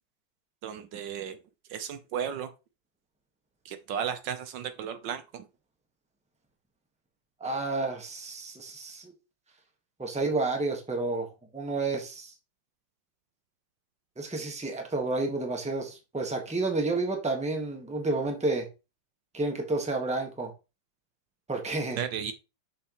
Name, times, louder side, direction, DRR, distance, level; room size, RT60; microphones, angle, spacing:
voice 1, 0.6-1.4 1.7-2.5 3.6-5.5 22.0-22.3, right 8 dB, 75° right, 1.3 m, -34 dB
voice 2, 7.4-9.1 10.0-11.3 11.5-12.3 14.2-18.6 19.3-20.5 21.5-22.0, right 3 dB, 5° right, 1.1 m, -30 dB
6.3 x 6.1 x 3.0 m
omnidirectional pair, 2.1 m